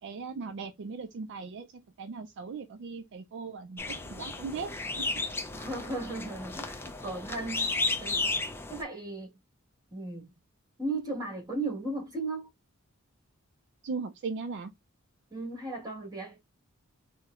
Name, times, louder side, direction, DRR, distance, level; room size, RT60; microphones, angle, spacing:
voice 1, 0.0-5.2 13.8-14.7, right 4 dB, 55° right, 0.3 m, -39 dB
sound 1, 3.8-8.8, left 3 dB, 10° left, 0.4 m, -33 dB
voice 2, 5.5-8.4 8.7-9.3 9.9-10.3 10.8-12.5 15.3-16.4, right 2 dB, 20° right, 1.4 m, -36 dB
4.2 x 2.0 x 2.4 m
head